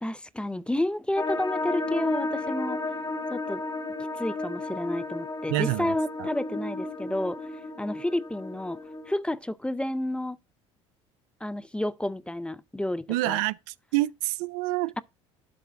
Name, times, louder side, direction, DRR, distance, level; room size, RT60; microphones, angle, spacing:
voice 1, 0.0-2.8 3.3-3.6 4.2-7.4 7.8-8.8 9.1-10.4 11.4-13.4, left 1 dB, 5° left, 0.4 m, -30 dB
sound 1, 1.2-9.2, left 2 dB, 20° left, 1.1 m, -33 dB
voice 2, 5.5-6.3 13.1-14.9, right 18 dB, 70° right, 0.4 m, -28 dB
7.8 x 3.2 x 6.2 m
hypercardioid pair, 70°, 16 cm